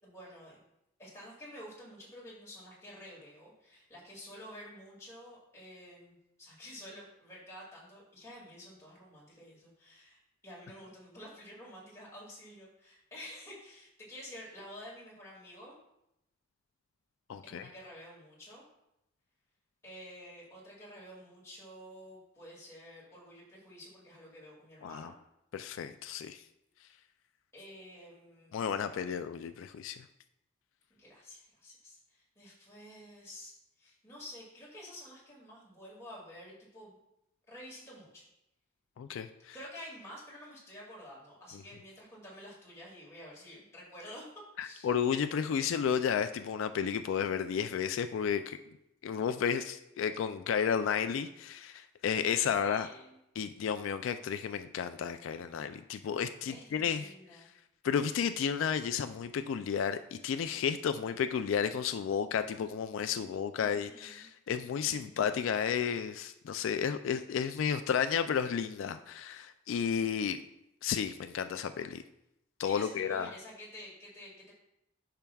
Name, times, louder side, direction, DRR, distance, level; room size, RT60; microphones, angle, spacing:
voice 1, 0.0-0.6 1.0-15.8 17.4-18.6 19.8-25.1 27.5-28.6 31.0-37.0 37.5-38.3 39.5-44.2 44.6-44.9 52.5-53.2 56.5-57.5 63.6-64.3 64.8-65.2 72.6-74.5, equal, 15° left, -5 dB, 2.1 m, -50 dB
voice 2, 17.3-17.7 24.8-25.1 25.5-26.4 28.5-30.1 39.0-39.5 41.5-41.6 44.6-48.6 49.0-52.9 53.4-57.4 57.8-70.4 70.8-72.0 72.6-73.3, left 7 dB, 80° left, 9 dB, 0.3 m, -32 dB
10.5 x 5.7 x 2.3 m, 0.85 s
head